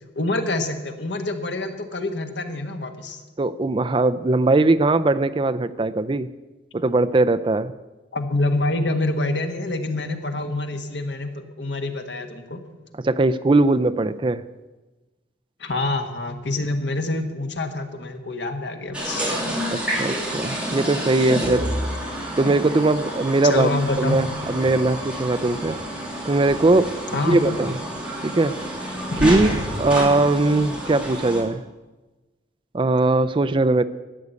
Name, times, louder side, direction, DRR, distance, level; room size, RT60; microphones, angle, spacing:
voice 1, 0.0-3.2 8.1-12.6 15.6-19.4 23.5-24.2 27.1-27.5 29.1-29.3, left 2 dB, 75° left, 5 dB, 1.6 m, -26 dB
voice 2, 3.4-6.3 6.7-7.7 13.0-14.4 19.7-21.6 22.4-25.8 26.3-27.7 28.2-28.6 29.2-29.5 29.8-31.6 32.7-33.8, right 2 dB, 30° right, 12 dB, 0.4 m, -20 dB
sound 1, 18.9-31.4, equal, 5° right, 3.1 m, -29 dB
13.0 x 9.5 x 8.3 m, 1.2 s
head